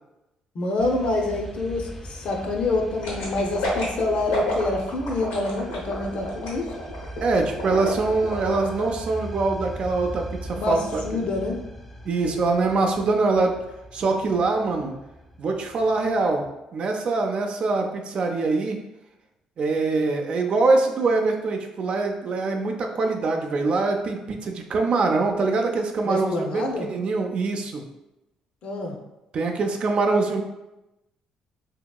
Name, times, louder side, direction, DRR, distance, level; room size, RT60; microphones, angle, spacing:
voice 1, 0.5-6.7 10.5-11.6 26.0-26.9 28.6-29.0, left 2 dB, 55° left, 2 dB, 0.6 m, -26 dB
sound 1, 0.8-16.5, equal, 5° left, 0.4 m, -40 dB
sound 2, 3.0-8.8 9.2-9.3, left 2 dB, 90° left, 1.0 m, -30 dB
voice 2, 7.2-11.0 12.0-13.6 13.9-14.9 15.4-16.4 16.7-18.8 19.6-27.8 29.3-30.4, right 3 dB, 55° right, 3 dB, 0.4 m, -23 dB
2.8 x 2.7 x 2.2 m, 0.96 s
supercardioid pair, 70°, 2 cm